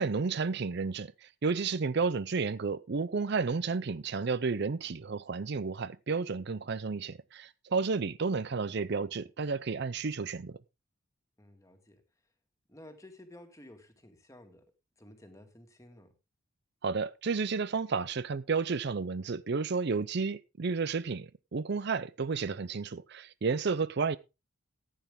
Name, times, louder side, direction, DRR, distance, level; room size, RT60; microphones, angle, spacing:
voice 1, 0.0-10.6 16.8-24.2, right 4 dB, 50° right, 0.5 m, -32 dB
voice 2, 11.4-12.0 12.7-14.7 15.0-16.1, left 1 dB, 15° left, 2.0 m, -53 dB
15.0 x 9.3 x 3.6 m
head